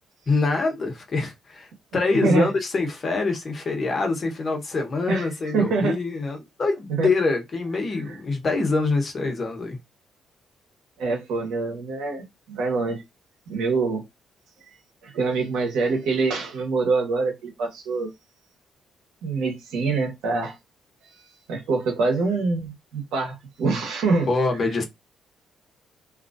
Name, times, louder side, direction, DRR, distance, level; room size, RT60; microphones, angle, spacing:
voice 1, 0.3-9.8 24.3-24.8, left 3 dB, 45° left, 1.1 m, -25 dB
voice 2, 2.1-2.5 5.1-6.0 6.9-7.1 8.1-8.2 11.0-13.0 13.5-14.0 15.0-18.1 19.2-20.6 21.0-24.3, right 4 dB, 85° right, 1.2 m, -25 dB
2.8 x 2.5 x 2.6 m
cardioid pair, 90°, 0 cm